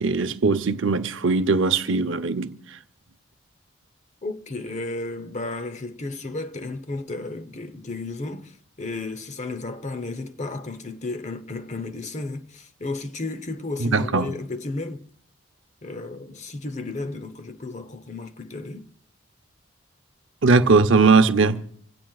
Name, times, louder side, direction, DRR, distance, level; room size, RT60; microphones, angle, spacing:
voice 1, 0.0-2.5 13.8-14.3 20.4-21.6, right 4 dB, 65° right, 0.7 m, -19 dB
voice 2, 4.2-15.1 15.8-18.9, left 2 dB, 35° left, 0.8 m, -33 dB
26.5 x 17.0 x 2.4 m
head